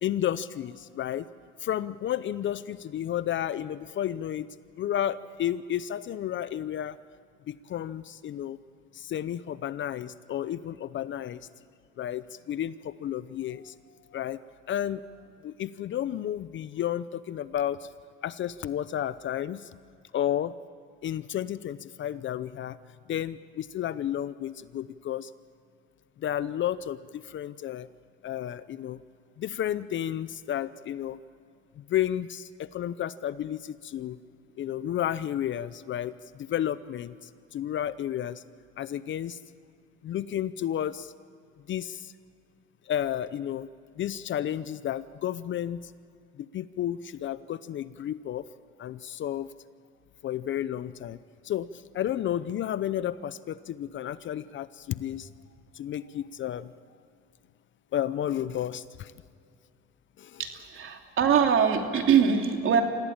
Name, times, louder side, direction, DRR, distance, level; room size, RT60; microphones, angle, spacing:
voice 1, 0.0-1.3 1.6-4.5 4.8-7.0 7.5-8.6 8.9-11.4 12.0-13.8 14.1-14.4 14.7-15.0 15.4-17.9 18.2-19.7 20.1-20.5 21.0-22.8 23.1-25.3 26.2-27.9 28.2-29.0 29.4-31.2 31.8-34.2 34.6-38.4 38.8-39.4 40.0-41.1 41.7-42.1 42.9-43.7 44.0-45.9 46.3-48.5 48.8-49.5 50.2-51.2 51.4-55.3 55.7-56.7 57.9-59.1 60.2-60.4, left 11 dB, 40° left, 16 dB, 0.6 m, -32 dB
voice 2, 60.4-62.8, right 7 dB, 45° right, 4 dB, 2.9 m, -23 dB
26.0 x 16.0 x 8.8 m, 2.4 s
supercardioid pair, 105°, 30 cm